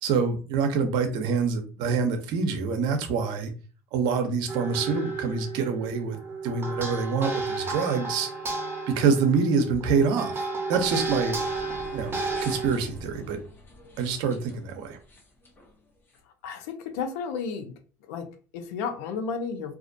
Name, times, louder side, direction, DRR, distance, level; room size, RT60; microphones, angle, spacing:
voice 1, 0.0-3.5 3.9-6.2 6.4-8.3 8.9-10.4 10.7-11.4 11.9-13.4 14.0-15.0, right 5 dB, 70° right, 7 dB, 0.6 m, -26 dB
sound 1, 4.5-12.7, right 3 dB, 30° right, 0.7 m, -32 dB
sound 2, 10.7-16.2, left 1 dB, 25° left, 0.8 m, -47 dB
voice 2, 16.2-17.7 18.0-19.7, left 5 dB, 80° left, 7 dB, 0.5 m, -33 dB
2.4 x 2.1 x 2.5 m, 0.37 s
supercardioid pair, 85°, 8 cm